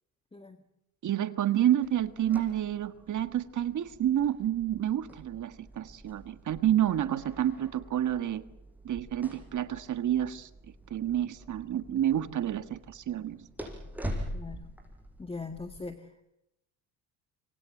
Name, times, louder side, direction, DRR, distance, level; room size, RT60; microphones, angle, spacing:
voice 1, 0.3-0.6 14.3-14.7 15.2-16.3, left 3 dB, 15° left, 7 dB, 1.9 m, -41 dB
voice 2, 1.0-8.4 8.8-10.5 10.9-13.5, right 11 dB, 50° right, 11 dB, 1.6 m, -29 dB
sound 1, 1.8-15.8, equal, 5° right, 7.1 m, -45 dB
26.0 x 25.5 x 7.9 m, 0.84 s
supercardioid pair, 80°, 40 cm